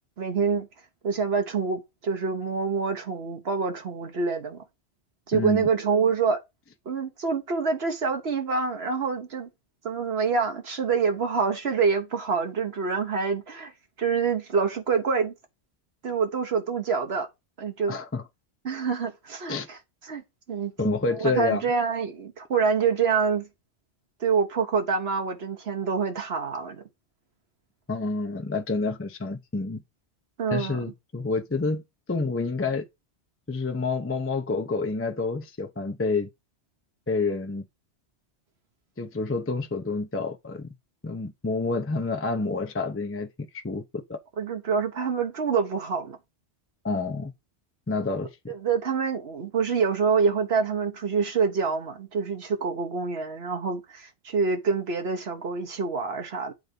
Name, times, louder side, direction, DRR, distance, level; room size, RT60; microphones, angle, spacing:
voice 1, 0.2-0.7 1.0-4.6 5.3-6.4 6.9-9.5 9.8-13.7 14.0-15.3 16.0-17.3 17.6-18.0 18.6-19.8 20.0-20.2 20.5-20.7 21.2-23.5 24.2-26.8 30.4-30.8 44.4-46.2 48.5-56.5, right 5 dB, 65° right, 1.3 m, -26 dB
voice 2, 5.3-5.7 17.9-18.2 19.5-19.7 20.8-21.6 27.9-29.8 30.5-31.8 32.1-32.9 33.5-36.3 37.1-37.6 39.0-40.7 41.0-44.2 46.8-47.3 47.9-48.5, left 3 dB, 15° left, 0.6 m, -28 dB
7.9 x 4.0 x 5.2 m
omnidirectional pair, 1.2 m